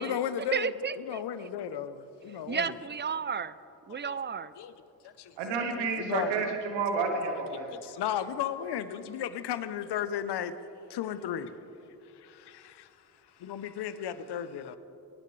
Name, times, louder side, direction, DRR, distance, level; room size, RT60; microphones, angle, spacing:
voice 1, 0.0-2.8 4.1-4.2 4.6-4.7 5.0-5.3 5.7-6.5 7.7-10.5 10.9-11.5 12.1-12.9 13.4-14.8, left 9 dB, 65° left, 0.9 m, -35 dB
voice 2, 0.5-1.5 2.5-3.5 3.9-4.5, right 6 dB, 25° right, 0.5 m, -33 dB
voice 3, 5.4-7.7, right 4 dB, 90° right, 1.3 m, -30 dB
23.0 x 10.5 x 3.3 m
supercardioid pair, 50°, 43 cm